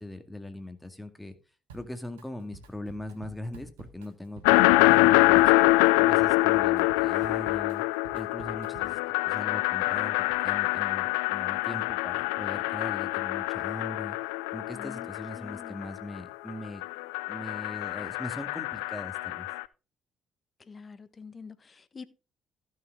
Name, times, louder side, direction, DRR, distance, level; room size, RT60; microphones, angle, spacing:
voice 1, 0.0-1.3 1.7-5.5 6.0-7.8 8.1-9.0 9.2-14.2 14.5-16.8 17.3-19.5, left 1 dB, 5° left, 2.1 m, -40 dB
Drum kit, 1.7-2.3 2.5-9.1, right 4 dB, 80° right, 1.5 m, -50 dB
sound 1, 4.4-16.2 16.5-19.6, left 20 dB, 75° left, 0.4 m, -25 dB
voice 2, 14.7-15.9 20.6-22.0, left 5 dB, 35° left, 1.3 m, -46 dB
15.0 x 6.5 x 3.6 m
figure-of-eight pair, 45°, 0 cm